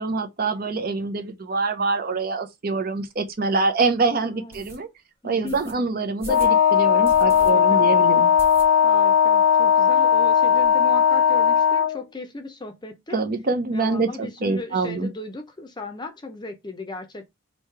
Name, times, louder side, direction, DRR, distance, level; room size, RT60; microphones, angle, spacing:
voice 1, 0.0-4.9 5.2-8.3 13.1-15.1, right 3 dB, 50° right, 0.6 m, -25 dB
sound 1, 3.1-3.2 3.7-3.8 4.5-4.8 5.5-5.7 6.2-6.6 7.0-7.5 7.8-7.9 8.4-9.0 9.4-9.5 9.7-9.8 10.1-10.7, right 1 dB, 10° right, 1.0 m, -41 dB
voice 2, 4.2-4.8 5.2-5.9 7.3-7.9 8.8-13.2 13.7-17.3, left 2 dB, 20° left, 0.6 m, -37 dB
Wind instrument woodwind instrument, 6.3-12.0, left 7 dB, 80° left, 0.3 m, -17 dB
3.1 x 2.8 x 4.4 m
head